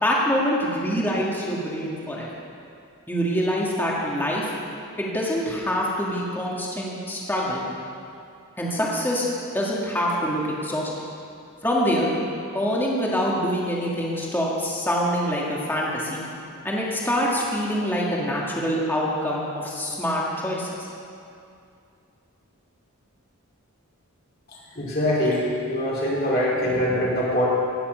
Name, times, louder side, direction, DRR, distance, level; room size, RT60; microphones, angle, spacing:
voice 1, 0.0-2.3 3.1-4.5 5.0-7.6 8.6-9.3 9.5-10.9 11.6-12.1 12.5-16.2 16.6-20.7, equal, 10° left, -4 dB, 1.8 m, -25 dB
voice 2, 24.8-27.5, equal, 40° left, -6 dB, 2.5 m, -23 dB
17.5 x 7.3 x 6.7 m, 2.5 s
head